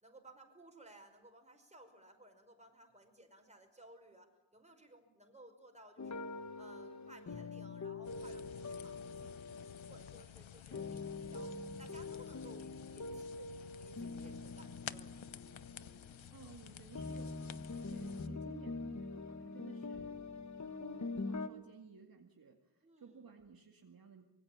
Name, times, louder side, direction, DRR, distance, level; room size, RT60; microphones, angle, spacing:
voice 1, 0.0-6.2 6.5-11.5 11.8-15.2 22.8-23.2, right 1 dB, 15° right, 4 dB, 5.4 m, -59 dB
sound 1, 6.0-10.2 10.7-16.3 16.9-21.5, left 3 dB, 40° left, 1.5 m, -44 dB
sound 2, 8.0-18.3, left 9 dB, 90° left, 0.9 m, -52 dB
voice 2, 15.9-20.2 20.5-24.2, right 5 dB, 50° right, 2 dB, 2.2 m, -57 dB
25.0 x 23.0 x 8.8 m, 0.90 s
wide cardioid pair, 125°, 45 cm